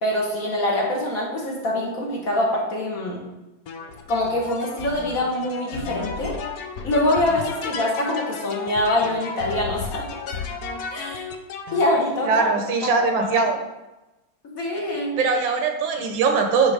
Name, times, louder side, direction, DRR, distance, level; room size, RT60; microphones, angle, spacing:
voice 1, 0.0-3.2 4.1-6.4 6.8-10.1 10.9-11.2 11.7-13.3 14.4-15.2, left 1 dB, 50° left, -2 dB, 1.4 m, -24 dB
sound 1, 3.7-11.9, left 5 dB, 70° left, 0.9 m, -33 dB
voice 2, 12.2-13.6 15.2-16.7, right 4 dB, 80° right, 4 dB, 1.6 m, -21 dB
8.8 x 3.1 x 4.8 m, 1.0 s
omnidirectional pair, 2.1 m